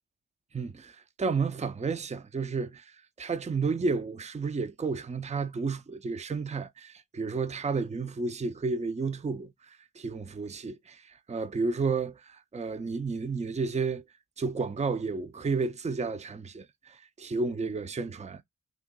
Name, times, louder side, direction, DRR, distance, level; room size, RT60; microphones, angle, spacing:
voice 1, 0.5-14.0 14.4-18.4, right 4 dB, 20° right, 0.5 m, -32 dB
2.8 x 2.5 x 3.7 m
cardioid pair, 45°, 33 cm